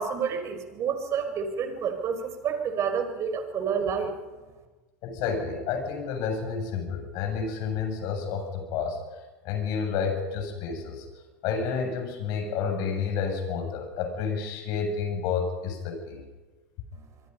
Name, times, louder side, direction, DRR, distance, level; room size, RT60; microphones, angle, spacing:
voice 1, 0.0-4.1, right 6 dB, 35° right, 6 dB, 5.1 m, -29 dB
voice 2, 5.0-9.0 9.4-11.1 11.4-16.2, left 6 dB, 50° left, 4 dB, 7.7 m, -30 dB
25.5 x 24.0 x 5.6 m, 1.2 s
hypercardioid pair, 95°, 8 cm